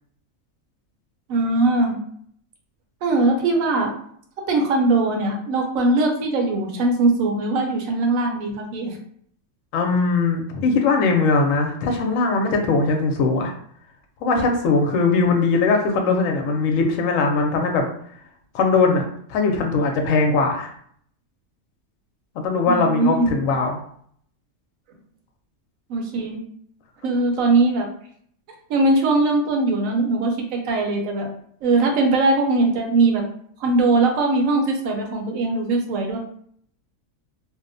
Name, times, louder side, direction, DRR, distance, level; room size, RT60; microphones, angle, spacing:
voice 1, 1.3-2.0 3.0-3.9 4.5-9.0 22.7-23.3 25.9-26.4 27.0-27.8 28.7-31.3 31.6-33.2 33.6-36.2, right 2 dB, 75° right, 2 dB, 1.0 m, -20 dB
voice 2, 9.7-13.5 14.2-17.8 18.5-20.7 22.4-23.8, left 4 dB, 75° left, 3 dB, 0.9 m, -20 dB
2.7 x 2.0 x 2.5 m, 0.63 s
omnidirectional pair, 1.4 m